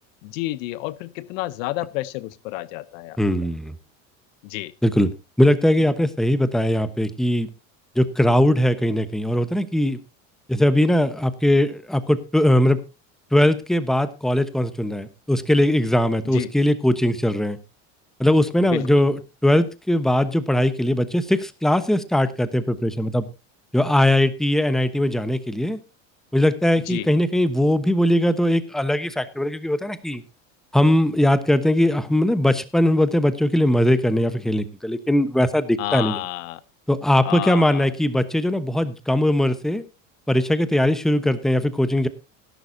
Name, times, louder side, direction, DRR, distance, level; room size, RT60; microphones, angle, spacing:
voice 1, 0.2-3.2 4.4-4.7 16.2-16.5 18.6-19.0 26.9-27.1 35.8-36.6 37.2-37.9, left 17 dB, 80° left, 18 dB, 0.9 m, -30 dB
voice 2, 3.2-3.7 4.8-5.1 5.4-7.5 7.9-10.0 10.5-12.8 13.3-17.6 18.2-23.2 23.7-25.8 26.3-30.2 30.7-36.2 36.9-39.8 40.3-42.1, left 1 dB, ahead, 12 dB, 1.0 m, -20 dB
18.0 x 11.0 x 2.8 m, 0.27 s
supercardioid pair, 115°, 39 cm